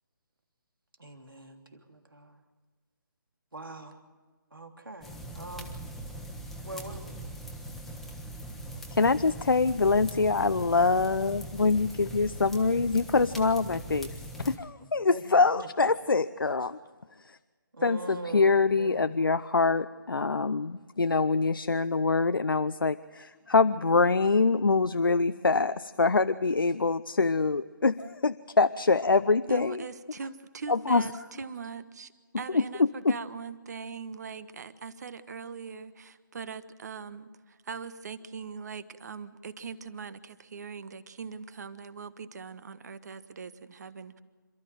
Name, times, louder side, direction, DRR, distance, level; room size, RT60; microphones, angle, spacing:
voice 1, 1.0-2.4 3.5-4.0 4.5-5.8 6.6-7.2 14.8-15.5 17.7-19.4, right 2 dB, 90° right, 4 dB, 3.2 m, -43 dB
sound 1, 5.0-14.6, right 1 dB, ahead, 1.3 m, -41 dB
voice 2, 8.9-14.1 14.4-16.8 17.8-29.8 30.7-31.0 32.5-32.6 33.0-33.1, left 4 dB, 85° left, 12 dB, 0.6 m, -25 dB
voice 3, 29.5-44.2, right 5 dB, 50° right, 14 dB, 1.3 m, -41 dB
27.5 x 13.5 x 7.7 m, 1.5 s
figure-of-eight pair, 150°, 11 cm